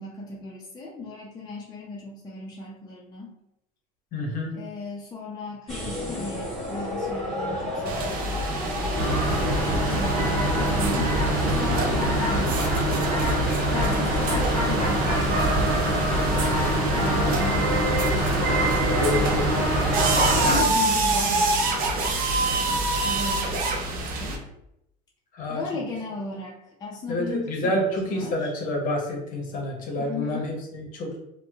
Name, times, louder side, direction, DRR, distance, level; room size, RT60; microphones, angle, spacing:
voice 1, 0.0-3.3 4.5-8.4 9.8-13.3 13.7-16.5 16.7-19.3 20.3-22.1 22.4-24.4 25.5-27.9 28.1-28.5 30.0-30.5, left 2 dB, 20° left, -3 dB, 0.4 m, -36 dB
voice 2, 4.1-4.5 13.7-13.9 17.2-17.5 19.0-19.5 25.3-25.6 27.1-31.2, left 1 dB, 45° left, 0 dB, 0.8 m, -28 dB
sound 1, 5.7-20.5, equal, ahead, 1.5 m, -30 dB
sound 2, 7.9-24.4, right 2 dB, 50° right, 0.6 m, -27 dB
sound 3, 9.0-20.6, right 1 dB, 85° right, 0.8 m, -25 dB
2.8 x 2.1 x 2.3 m, 0.82 s
hypercardioid pair, 85°, 19 cm